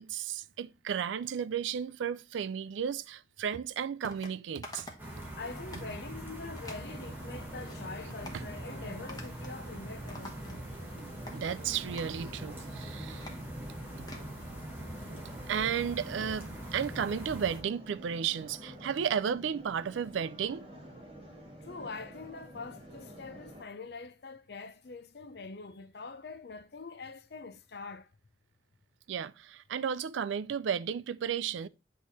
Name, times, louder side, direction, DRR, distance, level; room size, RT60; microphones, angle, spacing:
voice 1, 0.0-4.9 8.3-8.4 10.2-10.3 11.3-13.3 14.0-14.1 15.5-20.7 29.1-31.7, right 7 dB, 80° right, 0.4 m, -33 dB
sound 1, 4.0-4.3 4.6-5.1 5.5-5.9 6.6-6.9 7.4-7.8 8.1-8.4 9.1-9.6 9.9-10.8 11.3-11.4 11.9-12.2 12.7-14.3, left 2 dB, 20° left, 1.1 m, -48 dB
sound 2, 5.0-17.6, right 1 dB, 10° right, 1.7 m, -43 dB
voice 2, 5.4-10.6 21.5-28.1, left 4 dB, 55° left, 0.6 m, -44 dB
sound 3, 6.8-23.6, equal, 30° right, 1.9 m, -49 dB
8.2 x 3.2 x 4.1 m
head